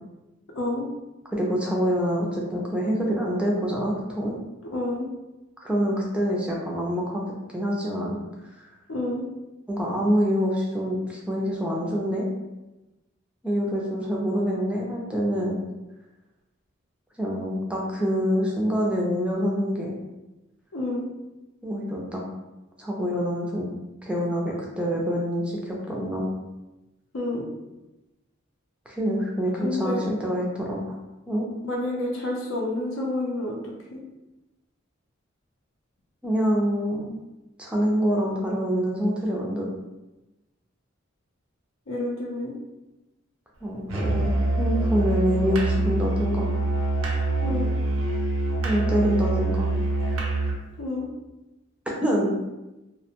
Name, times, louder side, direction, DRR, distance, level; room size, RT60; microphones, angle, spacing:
voice 1, 0.5-0.9 4.7-5.1 8.9-9.3 20.7-21.1 27.1-27.5 29.6-30.0 31.6-34.0 41.9-42.5 47.4-47.7 50.8-51.1, left 2 dB, 80° left, -1 dB, 0.6 m, -29 dB
voice 2, 1.3-4.3 5.6-7.2 7.5-8.2 9.7-12.3 13.4-15.6 17.2-20.0 21.6-22.2 22.8-23.7 24.0-26.3 28.9-30.8 31.3-31.5 36.2-37.1 37.6-39.7 43.6-46.5 48.6-49.7 52.0-52.3, equal, 5° right, -3 dB, 0.4 m, -26 dB
Musical instrument, 43.9-50.6, right 2 dB, 75° right, 0.5 m, -25 dB
2.5 x 2.1 x 2.8 m, 1.0 s
head